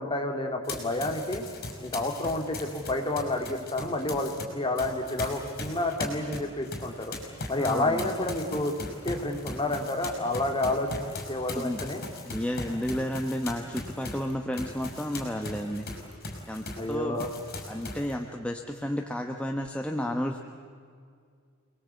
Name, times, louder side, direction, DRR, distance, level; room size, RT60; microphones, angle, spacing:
voice 1, 0.0-1.4 1.8-7.1 7.5-8.7 9.0-10.9 11.3-12.0 16.8-17.3, left 2 dB, 25° left, 3 dB, 2.7 m, -29 dB
Run, 0.6-4.4 4.8-16.9 17.2-18.1, left 2 dB, 50° left, 6.0 m, -39 dB
voice 2, 7.6-8.1 11.5-11.8 12.2-15.9 16.5-17.2 17.7-20.4, equal, 5° left, 3 dB, 1.2 m, -32 dB
28.0 x 21.0 x 8.3 m, 2.2 s
head